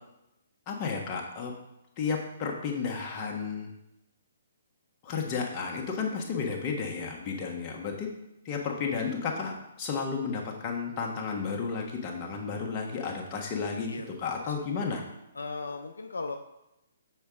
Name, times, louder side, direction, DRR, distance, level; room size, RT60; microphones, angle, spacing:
voice 1, 0.7-1.5 2.0-3.7 5.0-8.1 8.4-13.9 14.2-15.0, left 5 dB, 30° left, 0 dB, 1.3 m, -32 dB
voice 2, 14.3-14.7 15.3-16.4, left 3 dB, 75° left, 5 dB, 0.5 m, -37 dB
7.0 x 5.1 x 3.6 m, 0.90 s
figure-of-eight pair, 130°, 0 cm